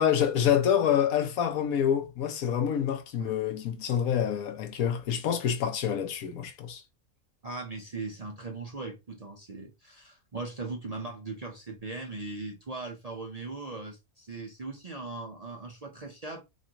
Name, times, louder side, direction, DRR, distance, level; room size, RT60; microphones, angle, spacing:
voice 1, 0.0-6.8, left 9 dB, 80° left, 1.2 m, -27 dB
voice 2, 7.4-16.4, right 3 dB, 45° right, 0.5 m, -39 dB
4.1 x 2.5 x 2.8 m
omnidirectional pair, 1.5 m